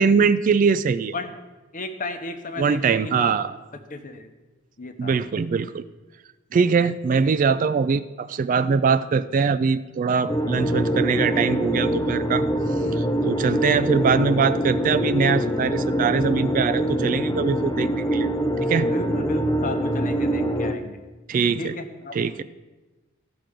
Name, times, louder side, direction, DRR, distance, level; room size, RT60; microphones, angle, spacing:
voice 1, 0.0-1.1 2.6-3.5 5.0-5.8 6.5-12.5 12.9-18.3 18.6-18.9 21.3-21.7 22.2-22.4, right 5 dB, 40° right, 13 dB, 0.3 m, -22 dB
voice 2, 1.7-3.3 3.9-4.3 4.8-5.2 5.5-5.6 18.9-21.0 21.6-22.4, left 2 dB, 40° left, 7 dB, 0.9 m, -33 dB
sound 1, 10.3-20.7, equal, 15° left, 0.5 m, -24 dB
15.0 x 5.9 x 5.1 m, 1.2 s
head